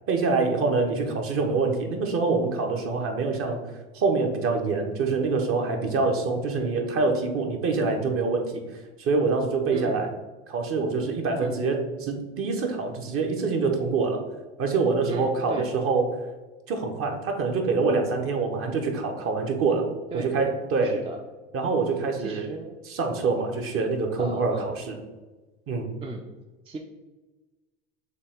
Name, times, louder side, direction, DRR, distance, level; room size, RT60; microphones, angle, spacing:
voice 1, 0.1-3.6 3.9-8.6 9.0-10.1 10.5-14.2 14.6-16.0 16.7-21.0 21.5-22.5 22.9-25.0 25.7-25.9, right 4 dB, 40° right, 3 dB, 1.0 m, -25 dB
voice 2, 15.1-15.7 20.1-20.3 20.8-21.2 22.2-22.8 24.2-24.7 26.0-26.3 26.7-26.8, right 3 dB, 15° right, 1 dB, 0.5 m, -36 dB
6.4 x 2.4 x 3.6 m, 1.2 s
hypercardioid pair, 90°, 33 cm